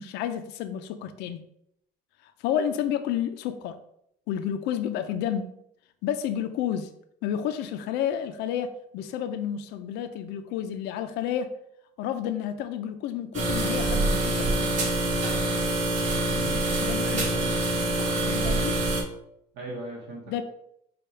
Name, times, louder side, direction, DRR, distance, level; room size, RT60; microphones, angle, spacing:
voice 1, 0.0-1.5 2.2-3.8 4.3-5.5 6.0-6.9 7.2-11.5 12.0-14.7 16.8-17.4 18.3-18.8 20.3-20.4, left 9 dB, 90° left, 8 dB, 0.4 m, -30 dB
sound 1, 13.3-19.0, right 2 dB, 45° right, 1.6 m, -25 dB
voice 2, 16.3-16.7 17.0-17.5 19.5-20.4, right 2 dB, 85° right, -2 dB, 1.0 m, -38 dB
4.9 x 2.3 x 4.3 m, 0.73 s
cardioid pair, 110°, 17 cm